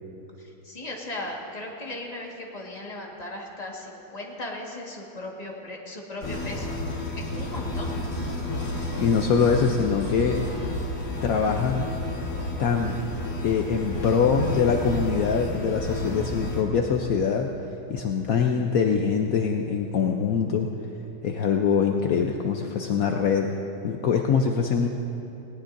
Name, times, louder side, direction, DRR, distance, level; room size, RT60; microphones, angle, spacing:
voice 1, 0.4-6.8 7.1-8.0, left 1 dB, 20° left, -2 dB, 1.6 m, -37 dB
sound 1, 6.2-11.7 12.3-12.4, left 1 dB, 90° left, 4.0 m, -46 dB
sound 2, 6.2-16.6, left 1 dB, 50° left, 1.9 m, -31 dB
voice 2, 9.0-10.5 11.2-11.9 12.6-13.0 13.4-17.5 17.9-20.7 21.2-23.5 23.8-24.9, left 6 dB, 70° left, 3 dB, 0.8 m, -23 dB
19.5 x 18.0 x 2.6 m, 2.9 s
omnidirectional pair, 2.2 m